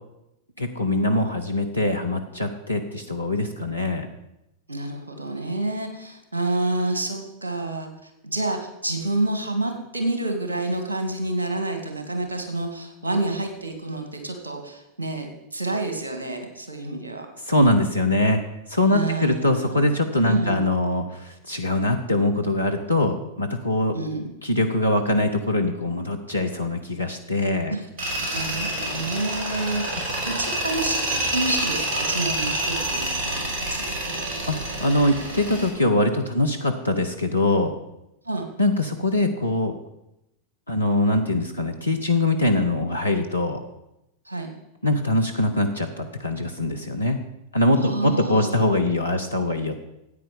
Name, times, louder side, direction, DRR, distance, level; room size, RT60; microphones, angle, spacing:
voice 1, 0.6-4.1 17.5-18.4 18.7-24.0 24.4-27.7 34.5-34.6 34.8-37.7 38.6-39.7 40.7-43.6 44.8-47.2 47.5-49.8, left 1 dB, 85° left, 4 dB, 1.0 m, -23 dB
voice 2, 4.7-17.3 18.9-19.9 20.2-20.7 23.9-24.3 27.7-27.9 28.3-34.2 38.2-38.5 44.3-44.5 47.8-48.6, right 2 dB, 75° right, 5 dB, 2.3 m, -29 dB
Tools, 28.0-35.7, right 1 dB, 50° right, 5.4 m, -28 dB
13.5 x 9.0 x 5.3 m, 0.87 s
figure-of-eight pair, 90°, 0 cm